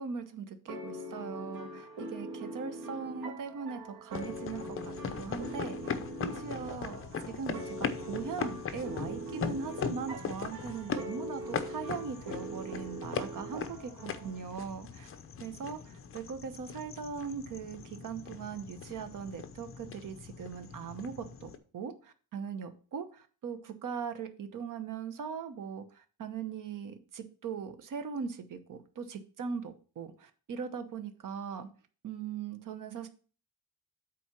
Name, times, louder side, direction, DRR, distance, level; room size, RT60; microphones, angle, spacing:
voice 1, 0.0-7.0 7.4-15.1 15.4-31.7 32.0-33.1, right 6 dB, 55° right, 9 dB, 1.0 m, -40 dB
sound 1, 0.7-14.4, right 1 dB, 80° right, 2.0 m, -42 dB
sound 2, 4.1-21.6, left 6 dB, 35° left, 0.7 m, -40 dB
7.5 x 4.3 x 5.8 m, 0.39 s
cardioid pair, 160°, 39 cm